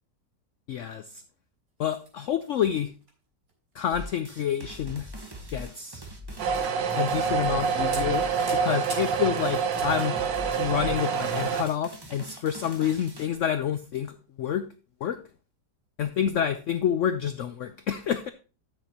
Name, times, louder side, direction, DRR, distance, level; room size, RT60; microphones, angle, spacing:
voice 1, 0.7-1.2 1.8-2.9 3.7-5.1 5.5-6.0 7.0-8.3 8.5-10.2 10.6-14.7 15.0-15.2 16.0-18.3, left 9 dB, 85° left, 11 dB, 0.6 m, -28 dB
sound 1, 1.8-2.5 3.0-3.1 3.5-3.7 4.7-5.1 5.6-5.9 6.7-6.8 7.3-7.5 7.9-11.6 11.9-12.1 12.6-12.7, right 2 dB, 45° right, 4.1 m, -44 dB
sound 2, 3.9-13.4, equal, 15° right, 1.0 m, -42 dB
sound 3, 6.4-11.6, right 6 dB, 90° right, 1.6 m, -27 dB
13.0 x 6.1 x 2.9 m, 0.34 s
omnidirectional pair, 1.9 m